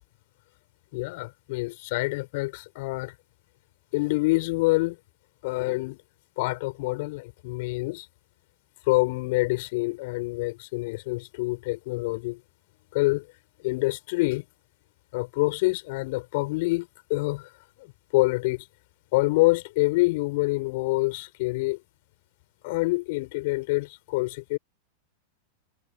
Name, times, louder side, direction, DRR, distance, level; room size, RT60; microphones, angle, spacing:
voice 1, 0.9-3.1 3.9-5.0 5.4-6.0 6.4-8.1 8.9-12.4 12.9-13.2 13.6-14.4 15.1-17.4 18.1-18.6 19.1-21.8 22.6-24.6, left 23 dB, 50° left, 5.8 m, -26 dB
figure-of-eight pair, 90°, 0 cm